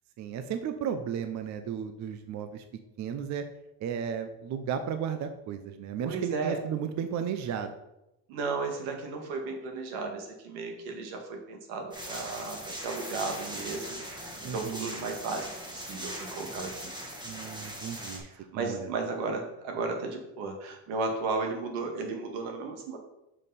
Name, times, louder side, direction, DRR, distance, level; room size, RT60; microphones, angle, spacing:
voice 1, 0.2-2.6 3.0-3.4 3.8-7.7 14.4-14.9 17.2-18.2 18.5-18.9, right 8 dB, 40° right, 8 dB, 0.5 m, -34 dB
voice 2, 6.0-6.6 8.3-16.9 18.2-23.0, right 3 dB, 80° right, 3 dB, 1.9 m, -34 dB
sound 1, 11.9-18.2, equal, 10° right, 1.5 m, -40 dB
7.4 x 5.4 x 4.1 m, 0.89 s
cardioid pair, 135°, 48 cm